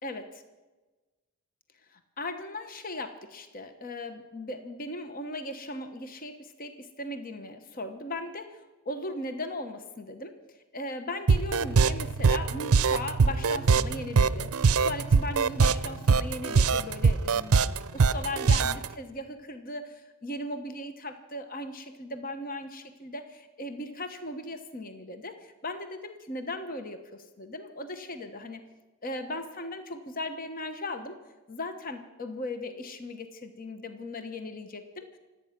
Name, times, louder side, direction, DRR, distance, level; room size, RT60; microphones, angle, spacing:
voice 1, 1.9-8.6 8.8-10.4 10.7-28.6 29.0-31.2 31.5-35.2, left 1 dB, 40° left, 8 dB, 1.1 m, -38 dB
sound 1, 11.3-18.9, right 5 dB, 75° right, 0.5 m, -22 dB
26.0 x 8.8 x 5.9 m, 1.2 s
head